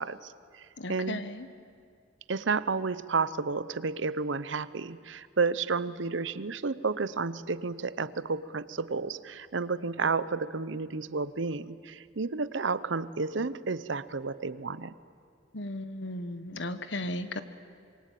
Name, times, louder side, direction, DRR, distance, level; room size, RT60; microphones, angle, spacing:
voice 1, 0.0-1.2 2.3-14.9, right 4 dB, 70° right, 16 dB, 0.8 m, -31 dB
voice 2, 0.8-1.5 15.5-17.4, left 1 dB, 65° left, 11 dB, 1.4 m, -35 dB
26.0 x 23.0 x 9.3 m, 2.2 s
head